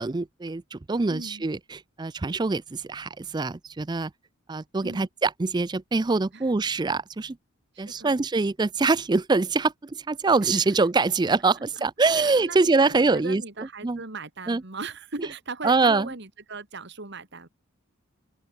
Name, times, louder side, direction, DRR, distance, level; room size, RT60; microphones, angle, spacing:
voice 1, 0.0-4.1 4.5-7.4 7.8-14.0 14.5-14.6 15.6-16.1, right 3 dB, 20° right, 0.4 m, -24 dB
voice 2, 1.1-1.5 4.8-5.1 6.3-6.4 7.7-8.2 10.4-10.8 11.7-17.5, right 3 dB, 55° right, 2.4 m, -38 dB
open air
head